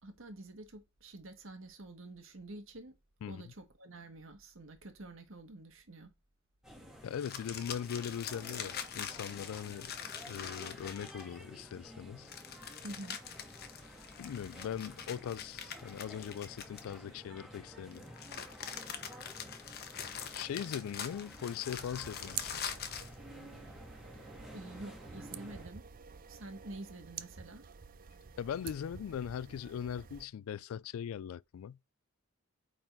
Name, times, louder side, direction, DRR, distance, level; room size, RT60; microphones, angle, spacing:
voice 1, 0.0-2.9 3.3-6.1 12.8-13.4 14.5-14.7 24.5-25.8 26.2-27.6, right 2 dB, 65° right, 1.5 m, -48 dB
voice 2, 3.2-3.5 7.0-9.9 10.3-12.3 14.2-18.0 20.3-22.6 28.4-31.8, left 8 dB, 75° left, 0.3 m, -40 dB
sound 1, 6.6-25.7, equal, 5° right, 2.1 m, -52 dB
sound 2, 7.1-11.4 12.3-17.2 17.9-23.1, left 8 dB, 50° left, 1.0 m, -44 dB
sound 3, 21.7-30.3, right 8 dB, 40° right, 0.5 m, -49 dB
8.8 x 3.9 x 4.0 m
head